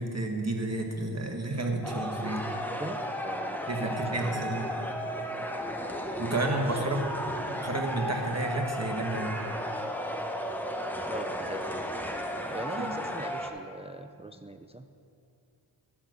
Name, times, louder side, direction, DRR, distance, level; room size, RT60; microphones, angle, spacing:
voice 1, 0.0-2.5 3.7-4.7 6.2-7.0 7.6-9.3 12.8-12.9, right 2 dB, 35° right, 2 dB, 1.4 m, -31 dB
sound 1, 1.8-13.5, equal, 5° left, 1.0 m, -34 dB
voice 2, 2.7-4.9 6.5-7.3 11.1-11.7 12.5-14.9, right 1 dB, 15° right, 8 dB, 0.3 m, -41 dB
11.5 x 6.1 x 6.4 m, 2.6 s
wide cardioid pair, 45°, 47 cm